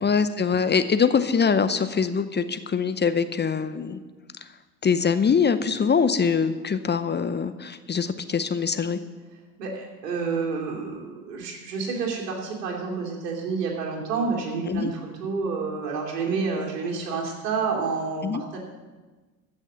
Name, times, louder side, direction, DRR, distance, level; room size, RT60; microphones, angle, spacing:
voice 1, 0.0-4.0 4.8-9.0 14.7-14.9 18.2-18.4, left 6 dB, 20° left, 12 dB, 0.7 m, -23 dB
voice 2, 9.6-18.6, right 4 dB, 80° right, -1 dB, 2.8 m, -29 dB
14.5 x 6.4 x 7.4 m, 1.3 s
hypercardioid pair, 65°, 47 cm